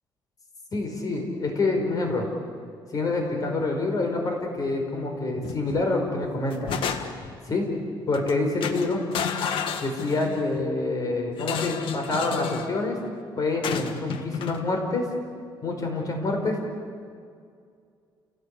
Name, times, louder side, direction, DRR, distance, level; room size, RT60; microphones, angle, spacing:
voice 1, 0.7-2.3 2.9-6.7 7.5-7.7 8.1-9.0 9.8-13.0 13.4-15.0 15.6-16.6, left 2 dB, 45° left, 3 dB, 5.0 m, -27 dB
sound 1, 5.4-5.9 6.2-7.4 8.1-8.3 8.6-10.5 11.4-12.7 13.6-14.6, left 7 dB, 85° left, 1.6 m, -31 dB
29.5 x 18.0 x 8.5 m, 2.2 s
cardioid pair, 135°, 9 cm